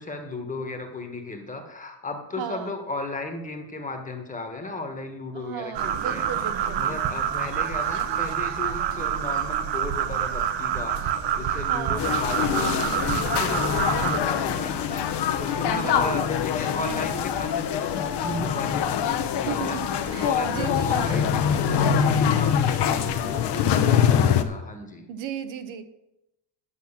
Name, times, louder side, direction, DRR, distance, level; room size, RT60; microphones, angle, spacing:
voice 1, 0.0-6.2 6.7-10.9 11.4-25.1, left 2 dB, 15° left, 4 dB, 1.3 m, -35 dB
voice 2, 2.4-2.7 5.3-6.8 11.7-12.1 15.7-16.3 19.5-21.3 25.1-25.8, right 8 dB, 85° right, 10 dB, 1.1 m, -35 dB
sound 1, 5.7-14.2, right 9 dB, 70° right, 1.0 m, -27 dB
sound 2, 12.0-24.4, left 8 dB, 60° left, 0.9 m, -24 dB
10.0 x 6.0 x 7.2 m, 0.89 s
cardioid pair, 170°, 45 cm